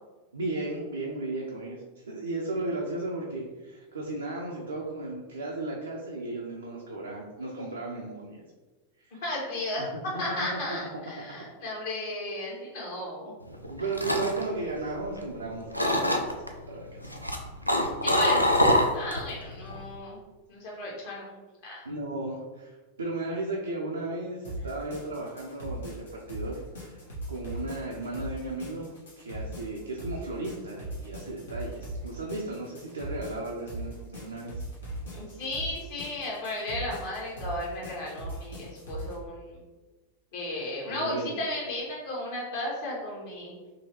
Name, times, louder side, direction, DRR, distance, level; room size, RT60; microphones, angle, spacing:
voice 1, 0.3-8.4 9.0-9.2 9.8-9.9 10.7-10.8 13.5-17.3 21.8-27.0 27.3-28.9 29.2-34.6 40.9-41.3, right 2 dB, 75° right, -3 dB, 0.5 m, -35 dB
voice 2, 9.2-9.8 10.2-13.3 18.0-18.6 18.9-20.2 20.5-21.8 35.1-39.6 40.3-43.5, left 1 dB, 50° left, -4 dB, 1.4 m, -34 dB
sound 1, 13.5-15.4 15.7-16.5 17.0-19.3 19.6-20.0, left 1 dB, 90° left, 0.4 m, -24 dB
sound 2, 24.4-39.1, right 1 dB, 65° left, 1.2 m, -39 dB
3.9 x 3.0 x 2.9 m, 1.3 s
figure-of-eight pair, 90°, 0 cm